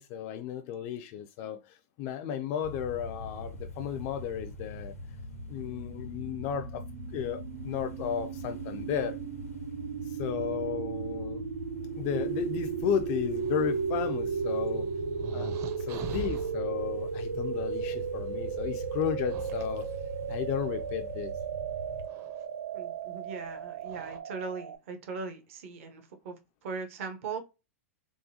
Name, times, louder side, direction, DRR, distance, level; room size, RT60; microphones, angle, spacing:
voice 1, 0.0-4.9 5.5-6.8 7.1-9.2 10.0-11.5 12.0-14.9 15.3-15.5 15.8-19.9 20.3-21.3, left 9 dB, 50° left, 0.3 m, -34 dB
sound 1, 2.6-22.1, left 2 dB, 90° left, 0.7 m, -43 dB
sound 2, 5.6-24.8, right 7 dB, 80° right, 0.5 m, -35 dB
sound 3, 13.4-16.6 17.9-18.0 19.0-20.9 22.0-22.4 23.4-23.5 23.9-24.2, right 4 dB, 40° right, 0.6 m, -44 dB
voice 2, 22.7-27.4, right 5 dB, 65° right, 0.9 m, -39 dB
3.6 x 2.2 x 2.7 m
hypercardioid pair, 115°, 8 cm